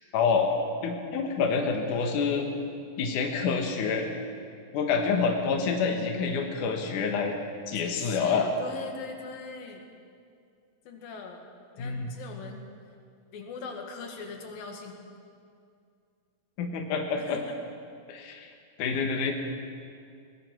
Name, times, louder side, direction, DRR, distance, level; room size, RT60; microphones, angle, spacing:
voice 1, 0.1-0.5 0.8-2.5 3.0-4.2 4.7-7.4 7.7-8.5 11.8-12.1 16.6-17.4 18.1-18.5 18.8-19.3, left 5 dB, 70° left, 2 dB, 2.8 m, -27 dB
voice 2, 7.8-9.9 10.9-11.4 11.8-12.7 13.3-14.9 17.2-17.6, left 4 dB, 85° left, 3 dB, 3.8 m, -41 dB
22.0 x 19.5 x 6.2 m, 2.3 s
omnidirectional pair, 4.0 m